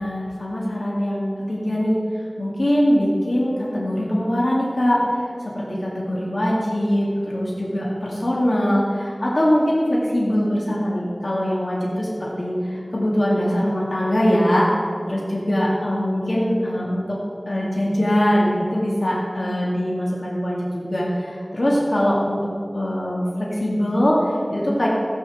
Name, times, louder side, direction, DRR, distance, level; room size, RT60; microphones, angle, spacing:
voice 1, 0.0-2.0 2.4-5.0 5.5-14.7 15.1-17.2 17.5-22.4 22.7-24.9, equal, 85° left, -5 dB, 2.2 m, -22 dB
16.5 x 5.7 x 7.5 m, 2.2 s
wide cardioid pair, 45°, 0 cm